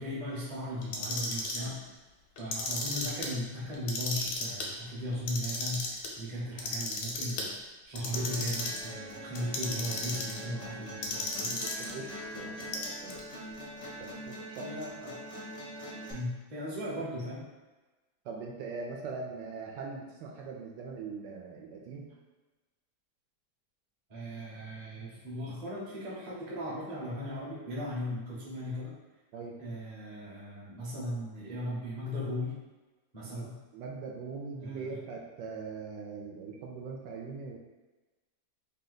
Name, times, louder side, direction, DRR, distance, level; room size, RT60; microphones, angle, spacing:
voice 1, 0.0-1.8 2.4-7.6 7.9-11.6 14.6-15.2 16.1-17.4 24.1-28.9 29.6-32.6 33.1-33.6 34.6-35.0, equal, 30° right, -6 dB, 0.7 m, -37 dB
Clock, 0.8-1.7 2.4-3.3 3.7-4.7 5.1-6.1 6.6-7.5 7.9-8.9 9.3-10.4 11.0-11.9 12.6-13.2, left 3 dB, 90° left, 1.5 m, -34 dB
sound 1, 8.1-16.1, equal, 45° left, 0.4 m, -43 dB
voice 2, 11.4-13.6 14.0-14.7 18.2-22.1 29.3-29.5 33.3-33.5 33.7-37.6, right 4 dB, 75° right, -1 dB, 1.2 m, -41 dB
3.4 x 2.8 x 3.9 m, 1.2 s
omnidirectional pair, 2.1 m